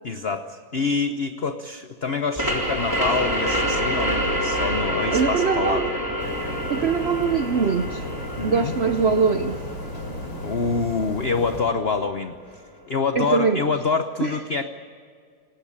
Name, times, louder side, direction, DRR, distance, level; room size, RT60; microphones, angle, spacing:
voice 1, 0.0-5.8 8.4-8.7 10.4-12.3 12.9-14.7, left 4 dB, 45° left, 0.9 m, -26 dB
sound 1, 2.4-11.7, equal, 10° right, 3.7 m, -27 dB
voice 2, 5.1-6.0 6.7-8.1 8.4-9.6 13.2-13.6 14.2-14.4, right 6 dB, 85° right, 0.5 m, -22 dB
sound 2, 6.2-11.6, left 1 dB, 75° left, 4.2 m, -34 dB
28.0 x 17.5 x 8.7 m
omnidirectional pair, 2.1 m